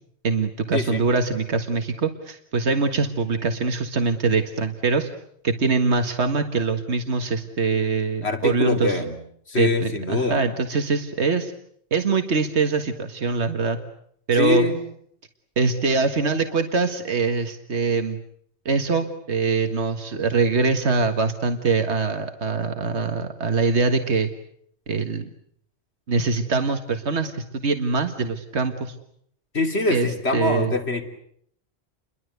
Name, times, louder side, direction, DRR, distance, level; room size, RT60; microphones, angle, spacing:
voice 1, 0.2-5.1 5.4-9.0 9.6-11.5 11.9-13.8 14.3-14.7 15.6-18.2 18.7-24.3 24.9-25.3 26.1-29.0 29.9-30.7, right 4 dB, 85° right, 7 dB, 2.0 m, -23 dB
voice 2, 8.2-9.2 9.5-10.4 14.4-14.8 29.5-31.0, left 3 dB, 70° left, 6 dB, 3.5 m, -24 dB
30.0 x 23.0 x 8.1 m, 0.67 s
omnidirectional pair, 1.1 m